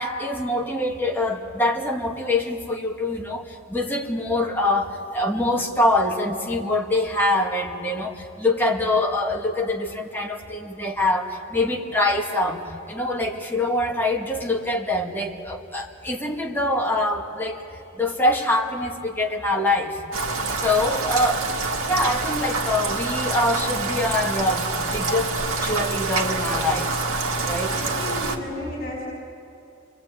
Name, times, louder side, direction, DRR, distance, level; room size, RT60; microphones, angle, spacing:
voice 1, 0.0-12.6 12.9-17.6 18.0-20.0 20.6-21.5 21.8-25.3 25.6-26.9 27.5-27.8, left 1 dB, 10° left, 0 dB, 2.1 m, -24 dB
Rain, 20.1-28.4, right 3 dB, 90° right, 2.0 m, -26 dB
voice 2, 27.7-29.1, left 1 dB, 45° left, -3 dB, 5.8 m, -33 dB
29.5 x 22.0 x 8.6 m, 2.5 s
head